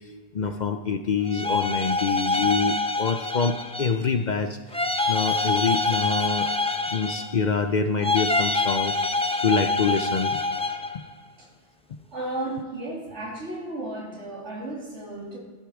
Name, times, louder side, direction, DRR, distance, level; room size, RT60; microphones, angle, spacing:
voice 1, 0.3-4.8 5.1-6.5 6.9-8.9 9.4-10.4 10.9-11.0 11.9-12.0, left 5 dB, 50° left, 8 dB, 0.6 m, -26 dB
sound 1, 1.2-4.1 4.7-7.5 8.0-11.0, left 2 dB, 10° left, 0.5 m, -26 dB
voice 2, 12.1-15.4, right 2 dB, 80° right, -2 dB, 2.8 m, -34 dB
13.5 x 8.3 x 4.9 m, 1.5 s
omnidirectional pair, 1.2 m